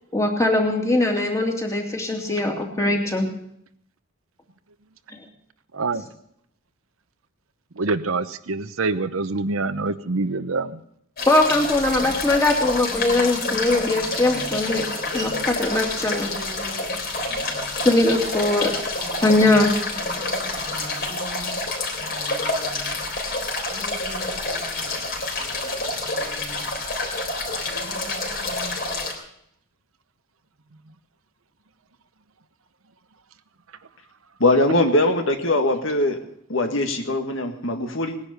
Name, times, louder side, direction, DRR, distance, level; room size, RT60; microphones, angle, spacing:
voice 1, 0.1-3.3 5.1-5.2 5.9-6.0 11.3-14.9 15.1-16.3 17.8-18.7 19.2-19.7, left 2 dB, 15° left, 1 dB, 2.6 m, -21 dB
voice 2, 7.8-10.7, right 3 dB, 85° right, 11 dB, 0.9 m, -25 dB
sound 1, 11.2-29.1, left 2 dB, 45° left, 3.6 m, -28 dB
voice 3, 34.4-38.2, left 1 dB, 65° left, 6 dB, 1.8 m, -21 dB
19.5 x 10.5 x 6.7 m, 0.73 s
head